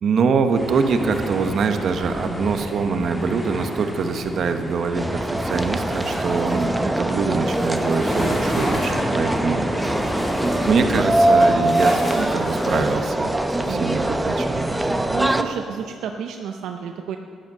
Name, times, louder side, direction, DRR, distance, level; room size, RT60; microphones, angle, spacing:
voice 1, 0.0-9.9 10.7-14.7, right 5 dB, 60° right, 7 dB, 1.1 m, -24 dB
sound 1, 0.5-11.0, equal, 5° left, 1.6 m, -30 dB
sound 2, 1.1-1.6 1.9-2.3 5.4-6.7 7.4-9.1 9.8-13.7, left 1 dB, 25° left, 3.8 m, -35 dB
sound 3, 5.0-15.4, right 1 dB, 10° right, 0.8 m, -22 dB
voice 2, 13.6-14.1 15.1-17.2, right 7 dB, 80° right, 5 dB, 0.6 m, -31 dB
12.0 x 10.5 x 6.5 m, 2.2 s
cardioid pair, 90°, 0 cm